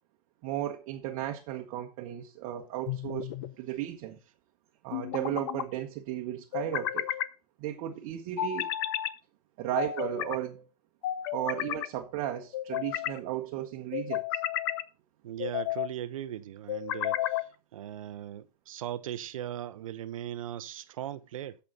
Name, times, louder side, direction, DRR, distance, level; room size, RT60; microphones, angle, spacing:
voice 1, 0.4-3.3 3.6-4.2 4.8-7.1 7.6-8.7 9.6-10.7 11.3-14.2, right 13 dB, 30° right, 1.2 m, -35 dB
sound 1, 2.9-3.5 4.9-5.7 6.5-7.3 8.4-9.1 9.7-10.4 11.0-11.9 12.5-13.2 13.9-14.8 15.4-15.9 16.7-17.5, left 12 dB, 35° left, 0.7 m, -32 dB
voice 2, 15.2-21.6, right 11 dB, 50° right, 0.8 m, -39 dB
13.5 x 5.6 x 4.0 m
hypercardioid pair, 135°, 21 cm